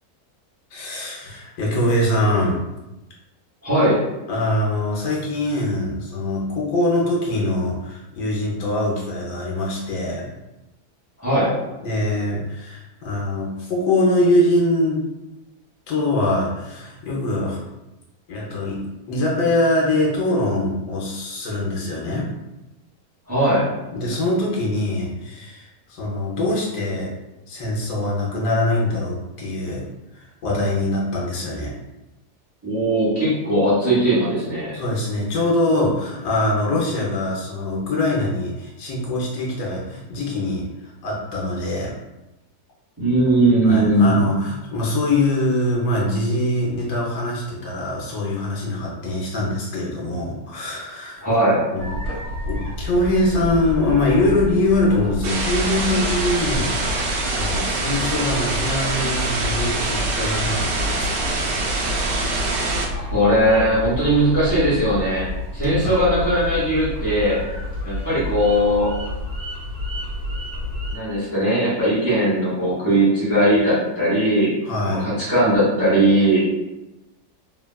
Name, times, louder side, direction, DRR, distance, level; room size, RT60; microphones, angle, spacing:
voice 1, 0.7-2.6 4.3-10.3 11.8-15.0 15.9-17.6 18.3-18.8 19.1-22.3 23.9-27.1 27.5-29.8 30.1-31.7 34.7-41.9 43.6-51.2 51.7-52.0 52.4-61.4 65.8-66.0 74.6-75.1, left 1 dB, 75° left, -3 dB, 1.3 m, -23 dB
voice 2, 3.6-4.0 11.2-11.5 23.3-23.7 32.6-34.8 43.0-44.2 51.2-51.6 62.9-65.3 65.5-67.4 67.8-68.9 70.9-74.5 74.9-76.4, right 1 dB, 10° right, -9 dB, 0.9 m, -19 dB
sound 1, 51.8-71.0, left 2 dB, 55° right, 1.6 m, -29 dB
sound 2, 55.2-62.9, right 3 dB, 85° right, 1.3 m, -25 dB
3.4 x 2.2 x 2.2 m, 1.0 s
omnidirectional pair, 1.8 m